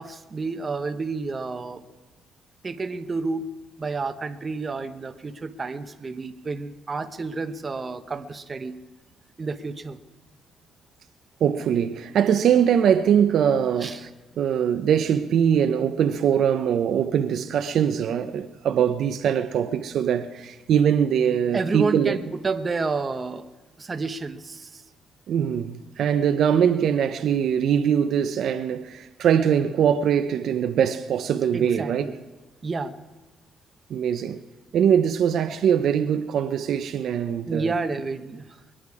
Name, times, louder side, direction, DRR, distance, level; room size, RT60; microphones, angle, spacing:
voice 1, 0.0-1.8 2.6-3.5 3.8-8.8 9.4-10.0 13.8-14.1 21.5-23.5 23.8-24.8 31.5-32.1 32.6-33.0 37.5-38.5, right 3 dB, 35° right, 1.0 m, -30 dB
voice 2, 11.4-14.1 14.4-22.2 25.3-32.1 33.9-34.4 34.7-37.7, right 8 dB, 70° right, 0.6 m, -22 dB
23.0 x 10.0 x 4.9 m
cardioid pair, 90°, 0 cm